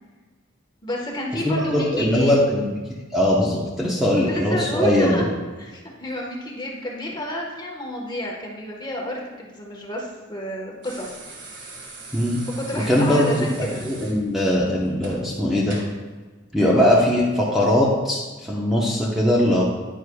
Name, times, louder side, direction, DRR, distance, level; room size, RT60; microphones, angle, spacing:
voice 1, 0.8-2.4 4.1-5.3 5.6-11.1 12.6-13.8 16.7-17.0, left 1 dB, 20° left, -1 dB, 1.4 m, -30 dB
voice 2, 1.4-5.2 12.1-12.4 12.9-15.8 16.5-18.2 18.5-19.6, left 1 dB, ahead, -5 dB, 1.0 m, -20 dB
sound 1, 10.8-16.0 17.4-17.5, right 3 dB, 55° right, 1.8 m, -41 dB
10.0 x 9.8 x 2.4 m, 1.3 s
head